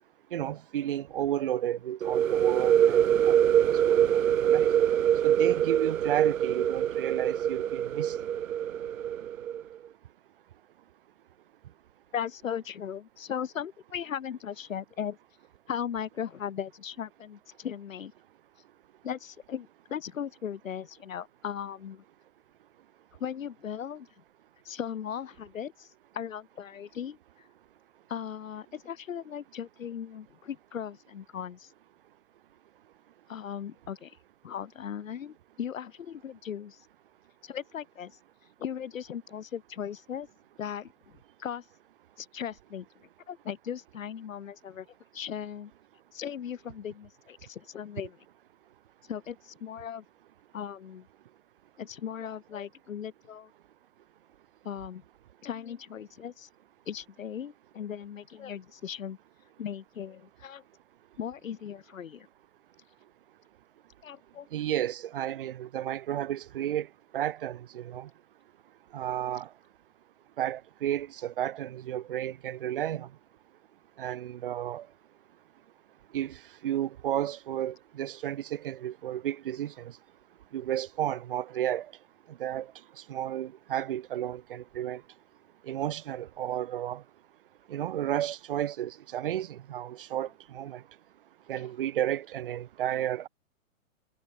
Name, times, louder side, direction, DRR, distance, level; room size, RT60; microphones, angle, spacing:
voice 1, 0.3-4.7 5.2-8.2 64.5-66.9 67.1-68.1 68.9-69.5 70.4-73.1 74.0-74.9 76.1-79.9 80.5-81.9 82.3-82.7 83.1-85.0 85.7-87.0 87.7-90.8 91.5-93.3, right 11 dB, 40° right, 1.8 m, -32 dB
sound 1, 2.0-9.6, right 10 dB, 75° right, 1.3 m, -24 dB
voice 2, 12.1-15.2 15.7-18.1 19.0-22.0 23.2-24.1 24.7-25.9 26.1-27.2 28.1-31.7 33.3-34.2 34.4-36.9 37.4-38.1 38.6-40.3 40.6-40.9 41.4-41.6 42.2-42.9 43.3-44.9 45.1-45.7 46.1-48.2 49.1-50.0 50.5-51.1 51.8-53.5 54.6-55.0 55.4-56.5 56.9-59.2 59.6-60.6 61.2-62.3 64.0-64.5, left 8 dB, 70° left, 3.8 m, -37 dB
hypercardioid pair, 175°, 41 cm